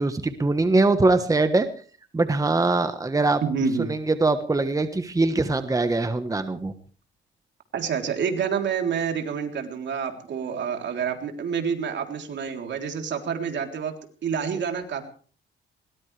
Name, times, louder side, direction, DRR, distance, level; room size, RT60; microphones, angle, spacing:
voice 1, 0.0-1.7 2.1-3.4 3.8-6.7, right 3 dB, 15° right, 9 dB, 1.3 m, -22 dB
voice 2, 3.4-3.9 7.7-13.9 14.2-15.1, right 6 dB, 65° right, 4 dB, 3.5 m, -28 dB
21.5 x 19.0 x 3.4 m, 0.42 s
cardioid pair, 90°, 20 cm